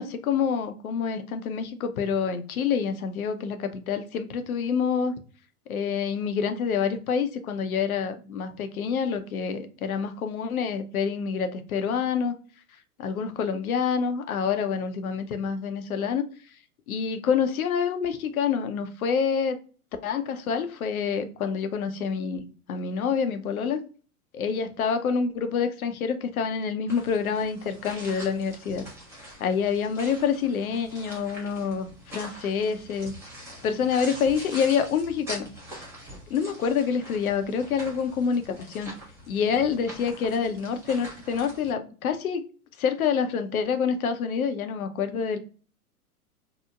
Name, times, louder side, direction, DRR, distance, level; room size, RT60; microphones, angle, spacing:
voice 1, 0.0-5.1 5.7-12.3 13.0-16.2 16.9-19.6 20.0-23.8 24.3-28.8 29.4-33.1 33.6-35.5 36.3-38.9 39.3-42.4 42.8-45.4, left 6 dB, 65° left, 0.6 m, -27 dB
sound 1, 26.9-41.7, equal, 5° right, 0.6 m, -44 dB
2.8 x 2.0 x 2.3 m
figure-of-eight pair, 100°, 46 cm